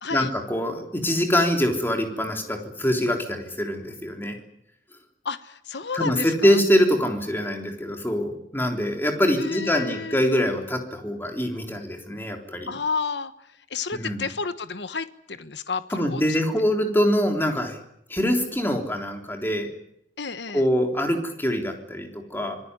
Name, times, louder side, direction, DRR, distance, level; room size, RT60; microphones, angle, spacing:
voice 1, 0.1-4.4 5.9-12.7 13.9-14.2 15.9-17.8 18.1-19.7 20.5-22.6, equal, 10° left, 3 dB, 3.6 m, -24 dB
voice 2, 5.2-6.6 9.4-10.2 12.7-16.4 20.2-20.6, left 4 dB, 65° left, 12 dB, 1.2 m, -31 dB
26.0 x 19.5 x 9.8 m, 0.76 s
head